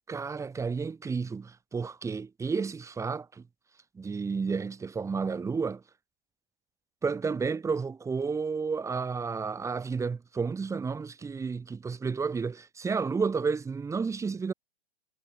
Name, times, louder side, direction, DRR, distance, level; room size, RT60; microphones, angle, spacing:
voice 1, 0.1-3.4 4.0-5.8 7.0-14.5, right 5 dB, 10° right, 1.8 m, -31 dB
figure-of-eight pair, 105°, 29 cm